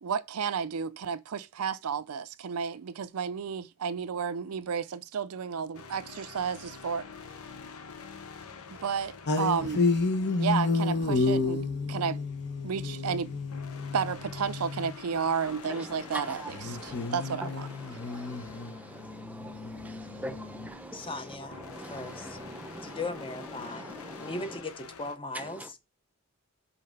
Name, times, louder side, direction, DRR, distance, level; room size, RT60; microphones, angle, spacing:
voice 1, 0.0-7.1 8.8-9.8 10.4-11.6 11.9-12.2 12.6-13.3 13.9-17.7, right 6 dB, 70° right, 0.5 m, -32 dB
sound 1, 5.7-25.2, left 5 dB, 70° left, 0.9 m, -48 dB
sound 2, 9.3-15.0 16.5-20.7, left 3 dB, 50° left, 1.1 m, -31 dB
voice 2, 15.4-17.1 17.4-24.6 25.3-25.7, right 1 dB, 5° right, 0.7 m, -43 dB
voice 3, 20.9-21.6 21.9-22.4 22.8-23.9 24.2-25.6, left 2 dB, 25° left, 0.8 m, -38 dB
5.7 x 4.2 x 5.2 m
head